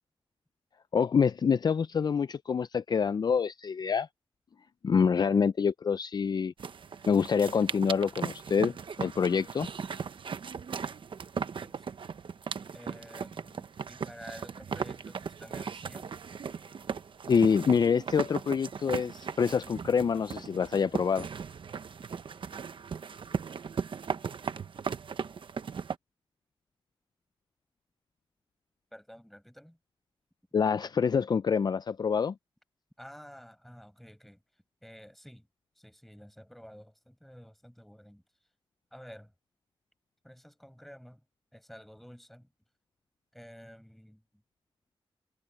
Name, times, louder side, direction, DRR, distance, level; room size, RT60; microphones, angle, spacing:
voice 1, 0.9-4.1 4.8-6.5 7.1-9.7 17.3-21.3 30.5-32.3, left 6 dB, 45° left, 0.4 m, -26 dB
sound 1, 6.6-26.0, right 6 dB, 60° right, 0.9 m, -38 dB
voice 2, 11.6-12.0 12.4-12.5 12.7-16.1 28.9-29.8 33.0-34.4 34.8-35.5 35.8-38.2 38.9-39.3 40.2-41.2 41.5-42.5 43.3-44.2, equal, ahead, 5.3 m, -51 dB
wide cardioid pair, 125°, 10 cm